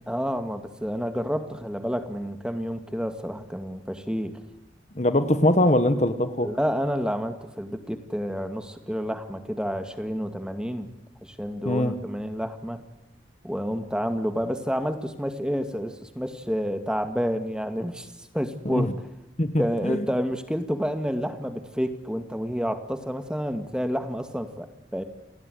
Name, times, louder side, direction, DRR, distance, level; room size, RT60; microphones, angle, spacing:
voice 1, 0.1-4.3 6.4-10.9 11.2-12.8 13.4-18.9 19.6-25.0, equal, 5° right, 8 dB, 2.1 m, -29 dB
voice 2, 4.9-6.5 11.6-11.9 18.6-18.9 19.4-20.0, left 1 dB, 40° left, 11 dB, 1.5 m, -22 dB
29.0 x 20.0 x 8.2 m, 0.87 s
head